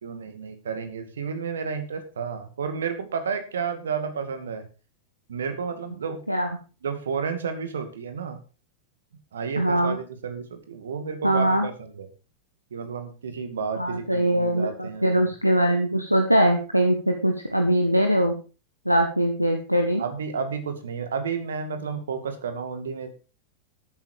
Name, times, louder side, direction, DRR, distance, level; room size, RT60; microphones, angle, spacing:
voice 1, 0.0-4.6 5.3-6.2 6.8-8.4 9.3-12.1 12.7-15.3 20.0-23.1, right 6 dB, 65° right, 8 dB, 2.3 m, -31 dB
voice 2, 9.6-9.9 11.2-11.7 13.8-18.4 18.8-20.0, right 1 dB, 90° right, 5 dB, 1.4 m, -22 dB
13.0 x 9.0 x 4.7 m, 0.33 s
figure-of-eight pair, 90°, 0 cm